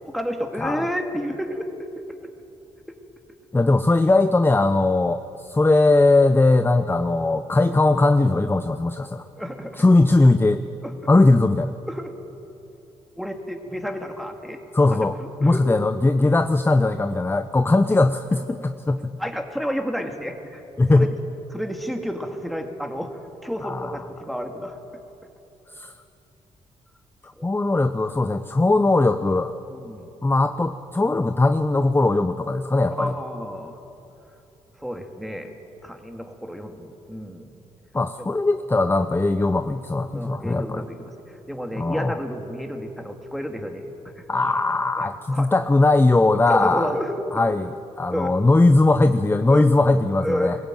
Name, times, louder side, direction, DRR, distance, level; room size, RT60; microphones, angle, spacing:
voice 1, 0.1-1.9 9.4-9.8 10.8-10.9 11.9-12.1 13.2-14.6 14.9-15.0 15.4-15.6 19.2-20.6 20.9-21.1 21.5-23.1 23.4-24.8 27.4-27.5 29.7-30.1 32.9-33.8 34.8-35.5 35.8-37.5 40.1-44.2 45.0-45.5 46.5-47.2 48.1-48.3 49.5-49.7 50.2-50.5, equal, ahead, 4 dB, 2.4 m, -30 dB
voice 2, 3.5-9.2 9.8-10.6 11.1-11.7 14.7-15.1 15.4-19.1 20.8-21.1 23.6-24.0 25.8-25.9 27.2-29.5 30.2-33.1 37.9-40.9 41.8-42.2 44.3-47.0 47.3-50.6, left 2 dB, 15° left, 10 dB, 0.7 m, -19 dB
21.0 x 15.5 x 9.1 m, 2.9 s
cardioid pair, 70°, 13 cm